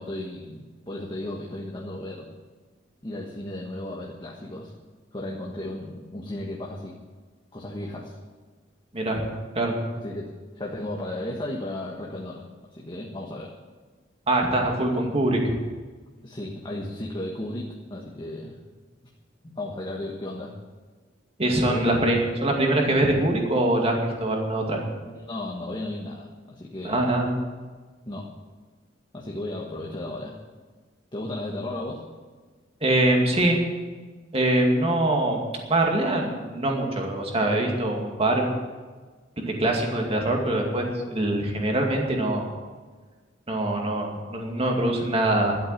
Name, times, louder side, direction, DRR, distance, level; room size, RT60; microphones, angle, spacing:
voice 1, 0.0-2.3 3.0-4.7 5.1-7.0 7.5-8.2 10.0-12.4 12.7-13.5 16.2-18.6 19.4-20.5 21.7-22.1 25.0-27.1 28.1-28.3 29.1-30.4 31.1-32.0, left 1 dB, 25° left, -2 dB, 1.4 m, -34 dB
voice 2, 14.3-15.5 21.4-24.8 26.8-27.3 32.8-33.6 34.3-35.4 35.7-38.4 39.4-42.5 43.5-45.6, right 1 dB, 30° right, 1 dB, 2.3 m, -23 dB
12.0 x 8.4 x 9.3 m, 1.4 s
head